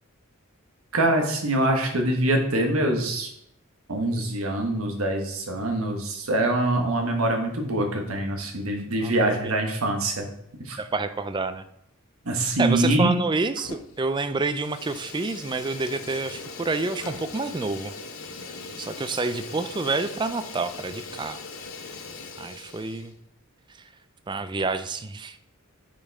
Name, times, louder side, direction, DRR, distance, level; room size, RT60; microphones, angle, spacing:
voice 1, 0.9-3.3 3.9-10.2 10.7-10.8 12.2-13.1, right 1 dB, 80° right, 3 dB, 1.4 m, -24 dB
voice 2, 9.0-9.5 10.8-11.6 12.6-17.9 18.8-21.4 22.4-23.1 24.3-25.4, right 3 dB, 20° right, 11 dB, 0.3 m, -28 dB
Fire, 13.5-14.1 14.4-23.1, left 4 dB, 80° left, 0.9 m, -40 dB
8.6 x 5.3 x 3.5 m, 0.75 s
head